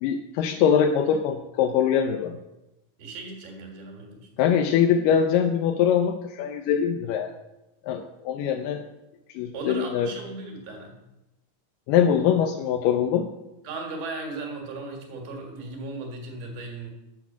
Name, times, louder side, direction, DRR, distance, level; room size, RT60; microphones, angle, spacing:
voice 1, 0.0-2.4 4.4-7.3 7.9-8.8 9.4-10.1 11.9-13.3, left 8 dB, 80° left, 4 dB, 2.1 m, -23 dB
voice 2, 3.0-4.3 9.5-11.0 13.6-16.9, right 3 dB, 75° right, 1 dB, 3.6 m, -36 dB
8.2 x 6.2 x 7.2 m, 0.94 s
omnidirectional pair, 4.4 m